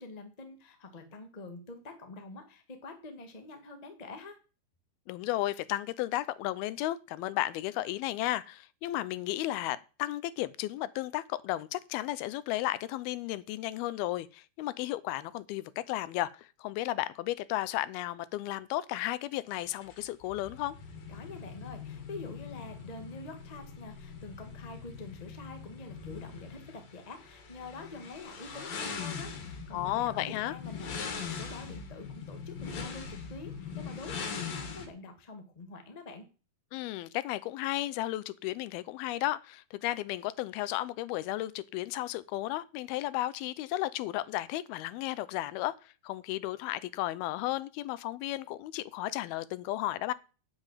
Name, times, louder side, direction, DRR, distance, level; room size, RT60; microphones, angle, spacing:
voice 1, 0.0-4.4 21.1-36.2, left 3 dB, 25° left, 0.9 m, -46 dB
voice 2, 5.1-20.8 29.7-30.6 36.7-50.1, left 15 dB, 85° left, 2.6 m, -34 dB
sound 1, 19.5-34.9, left 6 dB, 65° left, 3.9 m, -42 dB
8.8 x 7.6 x 9.1 m
omnidirectional pair, 4.4 m